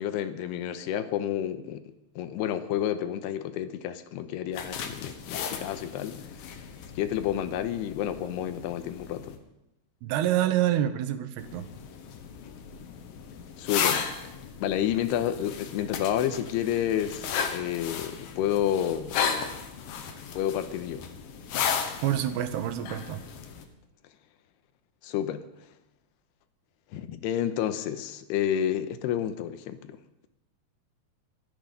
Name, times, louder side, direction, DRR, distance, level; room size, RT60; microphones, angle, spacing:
voice 1, 0.0-1.8 2.2-6.6 7.0-9.4 13.6-14.0 14.6-19.3 20.3-21.1 25.0-25.5 26.9-30.0, left 10 dB, 90° left, 10 dB, 2.9 m, -30 dB
sound 1, 4.5-9.4 11.4-23.7, left 7 dB, 70° left, 2.8 m, -35 dB
voice 2, 10.0-11.7 22.0-23.2, right 12 dB, 80° right, 10 dB, 2.9 m, -27 dB
25.0 x 8.5 x 5.3 m, 0.89 s
omnidirectional pair, 4.7 m